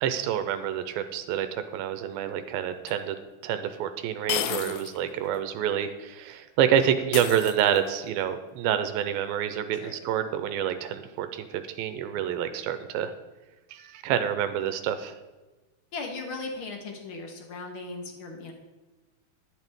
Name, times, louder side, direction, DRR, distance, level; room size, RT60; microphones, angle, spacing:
voice 1, 0.0-3.2 3.4-13.1 13.7-15.2, right 9 dB, 85° right, 9 dB, 2.4 m, -28 dB
sound 1, 2.9-3.0 4.3-5.0 5.3-5.4 7.1-8.0, left 11 dB, 80° left, 2.4 m, -32 dB
voice 2, 4.5-4.9 9.8-10.0 15.9-18.5, left 3 dB, 60° left, 3 dB, 1.4 m, -38 dB
11.0 x 10.5 x 3.6 m, 1.2 s
omnidirectional pair, 4.2 m